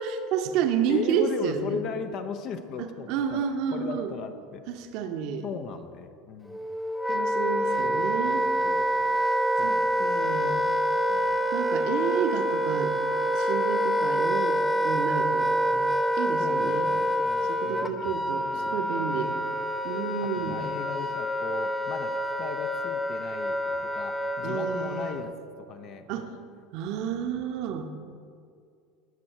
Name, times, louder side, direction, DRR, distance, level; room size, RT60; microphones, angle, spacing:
voice 1, 0.0-1.8 3.1-4.1 4.7-5.5 7.1-8.5 9.6-10.6 11.5-12.9 13.3-15.5 15.9-16.9 17.5-19.4 19.8-20.7 23.7-23.8 24.4-25.2 26.1-26.3 26.7-27.9, right 7 dB, 50° right, 6 dB, 0.8 m, -30 dB
voice 2, 0.9-3.4 3.7-4.6 5.4-6.7 7.8-9.2 9.6-10.7 11.1-11.5 15.7-16.0 16.4-18.2 18.5-19.4 20.2-26.3, left 6 dB, 45° left, 9 dB, 0.7 m, -38 dB
Wind instrument woodwind instrument, 6.5-25.3, equal, 5° left, 0.7 m, -27 dB
18.0 x 6.3 x 4.4 m, 2.4 s
figure-of-eight pair, 70°, 0 cm